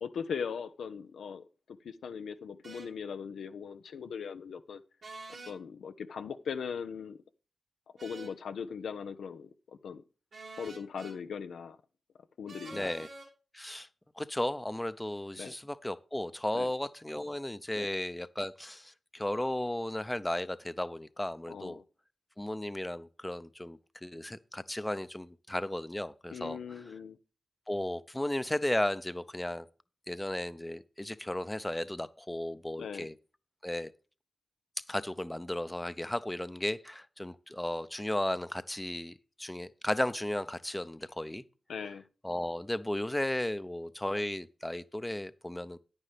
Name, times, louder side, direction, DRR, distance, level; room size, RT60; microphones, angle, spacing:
voice 1, 0.0-4.8 5.4-7.2 8.0-10.0 10.6-11.8 12.4-13.1 15.4-15.5 16.5-16.7 17.7-17.9 21.5-21.8 26.3-27.2 32.8-33.1 41.7-42.0, left 6 dB, 85° left, 0.6 m, -40 dB
sound 1, 2.6-2.9 5.0-5.6 8.0-8.4 10.3-11.2 12.5-13.3, right 3 dB, 70° right, 3.1 m, -47 dB
voice 2, 12.7-13.1 13.5-13.9 14.2-21.8 22.4-26.6 27.7-29.7 30.1-33.1 33.6-33.9 34.9-41.4 42.2-45.8, left 1 dB, 15° left, 0.7 m, -35 dB
9.8 x 9.0 x 3.4 m
supercardioid pair, 40°, 0 cm